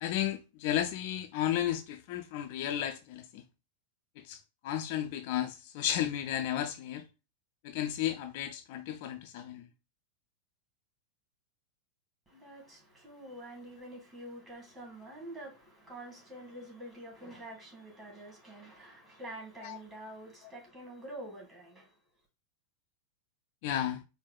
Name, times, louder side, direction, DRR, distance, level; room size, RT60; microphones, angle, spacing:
voice 1, 0.0-3.4 4.3-4.4 4.6-7.0 7.6-9.6 19.6-19.8 23.6-24.0, left 11 dB, 50° left, 0.4 m, -33 dB
voice 2, 12.3-22.0, right 1 dB, 15° right, 2.2 m, -47 dB
4.5 x 2.2 x 3.7 m
figure-of-eight pair, 90°, 0 cm